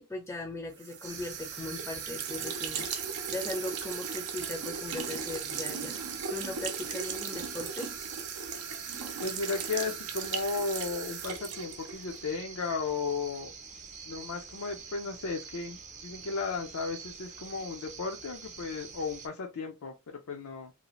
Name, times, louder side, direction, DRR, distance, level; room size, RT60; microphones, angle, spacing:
voice 1, 0.0-2.9 3.3-6.0 6.3-7.9, left 2 dB, 10° left, 0.5 m, -39 dB
sound 1, 0.8-12.2, right 6 dB, 75° right, 0.6 m, -37 dB
sound 2, 1.0-19.3, right 6 dB, 35° right, 0.6 m, -46 dB
voice 2, 9.2-13.5 14.1-20.7, left 4 dB, 65° left, 0.5 m, -35 dB
2.7 x 2.4 x 2.9 m
head